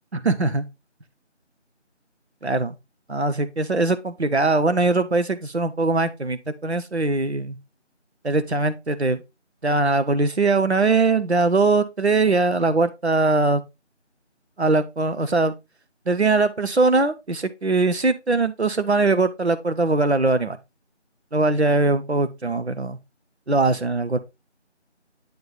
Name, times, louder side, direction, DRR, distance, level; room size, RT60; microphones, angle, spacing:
voice 1, 0.1-0.6 2.4-2.7 3.1-7.6 8.2-9.2 9.6-13.6 14.6-15.5 16.1-20.6 21.3-23.0 23.5-24.2, right 3 dB, 65° right, 0.8 m, -21 dB
9.6 x 3.4 x 4.0 m
figure-of-eight pair, 180°, 36 cm